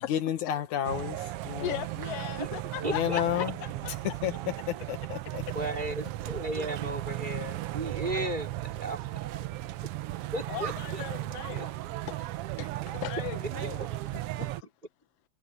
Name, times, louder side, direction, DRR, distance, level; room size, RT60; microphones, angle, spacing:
voice 1, 0.1-1.8 2.8-3.5 4.0-5.7, left 11 dB, 80° left, 2.9 m, -31 dB
sound 1, 0.8-14.6, right 16 dB, 85° right, 1.3 m, -36 dB
voice 2, 1.6-3.9 10.5-11.7 12.1-12.2 12.6-14.7, left 13 dB, 65° left, 2.2 m, -38 dB
voice 3, 2.8-3.2 5.5-9.4 10.3-11.0, right 1 dB, 15° right, 3.5 m, -35 dB
omnidirectional pair, 3.4 m